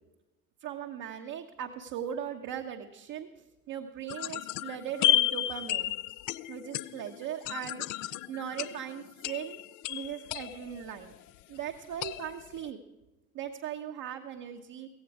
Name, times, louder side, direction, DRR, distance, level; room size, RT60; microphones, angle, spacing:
voice 1, 0.6-5.9 6.5-9.6 9.9-11.1 11.5-12.8 13.3-14.9, right 9 dB, 50° right, 3 dB, 1.2 m, -39 dB
sound 1, 4.1-11.3 12.0-12.7, left 14 dB, 45° left, 0.6 m, -32 dB
16.5 x 15.5 x 4.9 m, 1.0 s
figure-of-eight pair, 60°, 41 cm